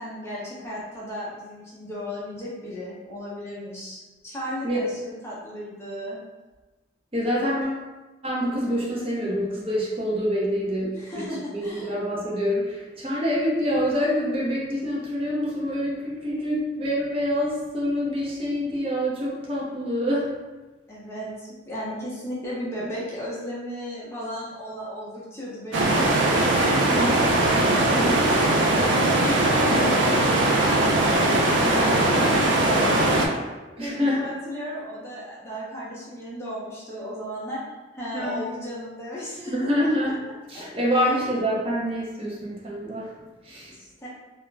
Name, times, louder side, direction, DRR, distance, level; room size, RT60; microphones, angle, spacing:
voice 1, 0.0-4.0 4.2-6.2 11.0-11.9 20.9-31.2 31.6-33.3 33.8-37.6 37.9-39.5 40.5-41.4 43.7-44.1, equal, 15° left, -7 dB, 0.6 m, -35 dB
voice 2, 7.1-7.8 8.2-20.3 26.8-27.2 28.0-28.2 33.8-34.2 38.1-38.4 39.5-40.2 40.5-43.1 43.4-43.7, equal, 30° right, -5 dB, 0.6 m, -26 dB
sound 1, 25.7-33.3, right 2 dB, 75° right, 0.4 m, -20 dB
2.4 x 2.0 x 3.2 m, 1.2 s
head